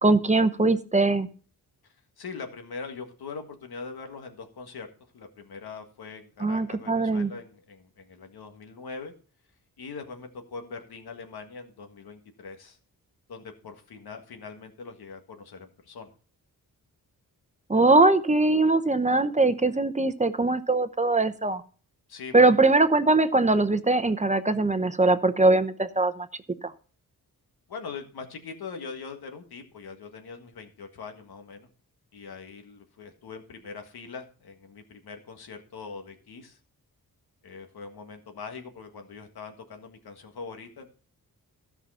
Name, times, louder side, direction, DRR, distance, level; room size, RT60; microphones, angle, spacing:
voice 1, 0.0-1.3 6.4-7.3 17.7-21.6 22.3-26.3 26.6-26.7, right 2 dB, 20° right, 12 dB, 0.8 m, -21 dB
voice 2, 1.8-4.9 5.1-9.1 9.8-12.8 13.3-16.1 22.1-22.7 27.7-31.7 32.1-36.6 37.4-40.9, left 4 dB, 85° left, 6 dB, 1.7 m, -42 dB
13.0 x 5.7 x 5.6 m, 0.40 s
wide cardioid pair, 90°, 36 cm